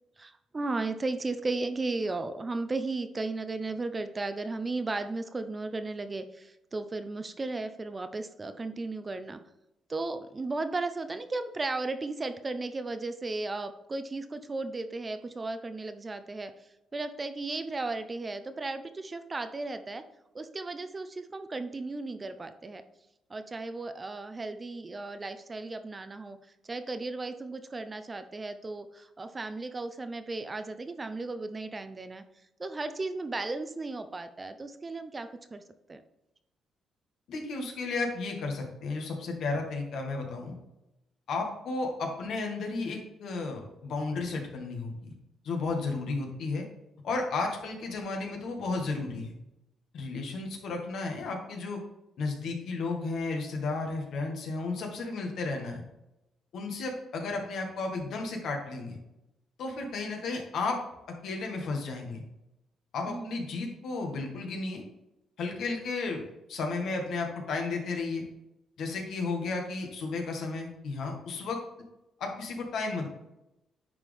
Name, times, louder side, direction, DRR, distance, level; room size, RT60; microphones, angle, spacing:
voice 1, 0.2-9.4 9.9-16.5 16.9-20.0 20.3-22.8 23.3-26.4 26.6-32.2 32.6-35.6 35.9-36.0 63.1-63.4, right 3 dB, 25° right, 9 dB, 0.7 m, -35 dB
voice 2, 37.3-40.5 41.3-45.1 45.4-46.6 47.0-49.3 49.9-51.8 52.2-55.8 56.5-59.0 59.6-60.8 61.1-62.2 62.9-64.8 65.4-66.2 66.5-68.3 68.8-71.6 72.2-73.1, left 3 dB, 70° left, 2 dB, 1.8 m, -33 dB
9.6 x 4.4 x 3.5 m, 0.91 s
cardioid pair, 90°, 0 cm